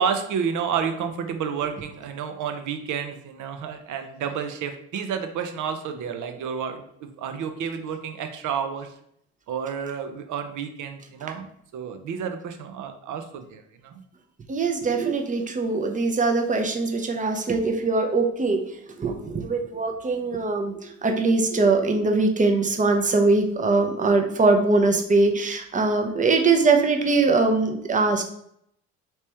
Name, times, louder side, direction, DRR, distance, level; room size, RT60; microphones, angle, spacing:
voice 1, 0.0-8.9 9.5-14.0, right 7 dB, 60° right, 7 dB, 0.7 m, -30 dB
voice 2, 14.5-18.6 19.0-28.2, right 3 dB, 20° right, 4 dB, 0.7 m, -22 dB
3.3 x 3.0 x 3.2 m, 0.70 s
supercardioid pair, 65°, 35 cm